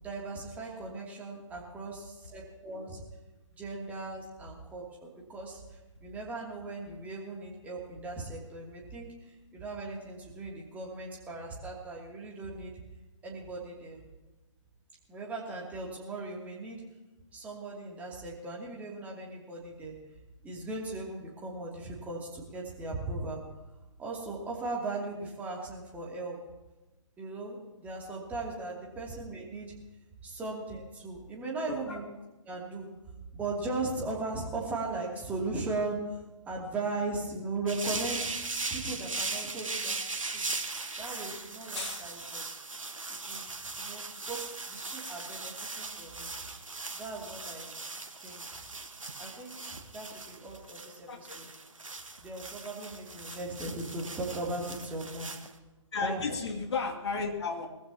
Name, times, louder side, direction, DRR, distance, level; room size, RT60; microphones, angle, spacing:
voice 1, 0.0-3.0 3.6-12.7 13.2-14.0 15.1-16.8 17.3-19.9 20.4-23.4 24.0-26.4 27.2-29.7 30.2-32.1 32.4-32.9 33.3-36.0 36.5-38.3 38.7-40.0 40.3-40.5 41.0-42.4 43.2-46.4 46.9-47.7 48.2-48.6 49.2-51.5 52.2-55.4 56.0-56.4, right 3 dB, 10° right, -3 dB, 2.8 m, -38 dB
voice 2, 31.7-32.0 41.8-42.2 51.1-51.4 52.1-52.2 55.9-57.7, left 4 dB, 55° left, 3 dB, 2.5 m, -34 dB
sound 1, 37.7-55.5, right 3 dB, 85° right, 1.4 m, -39 dB
22.0 x 15.0 x 2.9 m, 1.1 s
figure-of-eight pair, 140°, 16 cm